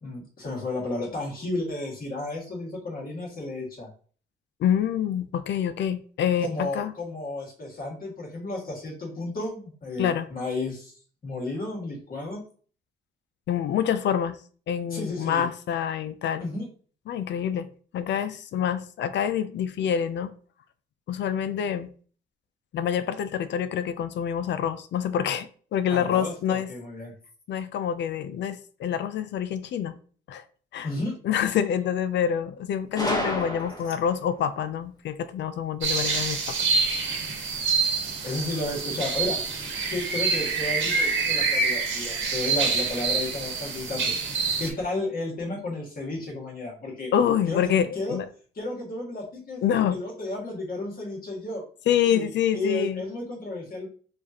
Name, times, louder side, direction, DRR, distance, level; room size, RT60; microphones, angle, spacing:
voice 1, 0.0-3.9 6.4-10.9 11.2-12.4 14.9-15.5 16.4-16.7 25.9-27.1 30.8-31.2 38.2-39.4 39.9-44.1 44.6-47.1 47.5-48.2 48.6-51.6 52.1-53.9, left 2 dB, 45° left, 1.8 m, -33 dB
voice 2, 4.6-6.9 10.0-10.3 13.5-14.4 14.7-16.4 17.1-17.7 17.9-20.3 21.1-21.9 22.7-26.7 27.5-30.0 30.3-30.4 30.7-30.9 31.2-36.6 37.1-37.3 47.1-48.3 49.6-50.0 51.9-53.0, left 9 dB, 65° left, 0.4 m, -26 dB
Gunshot gunfire, 33.0-34.2, left 1 dB, 20° left, 1.1 m, -29 dB
sound 1, 35.8-44.7, right 4 dB, 75° right, 1.4 m, -26 dB
5.1 x 2.5 x 2.8 m
cardioid pair, 90°, 20 cm